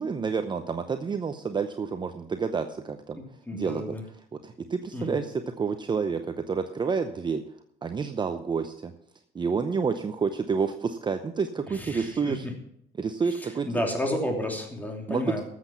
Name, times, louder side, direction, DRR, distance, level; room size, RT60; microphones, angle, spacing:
voice 1, 0.0-4.0 4.3-7.6 7.8-8.9 9.3-12.5 13.0-13.8 15.1-15.4, right 5 dB, 25° right, 8 dB, 0.7 m, -29 dB
voice 2, 3.1-4.0 4.9-5.2 11.7-12.3 13.6-15.4, left 1 dB, 10° left, 2 dB, 3.0 m, -31 dB
13.5 x 7.9 x 5.7 m, 0.72 s
cardioid pair, 110°, 17 cm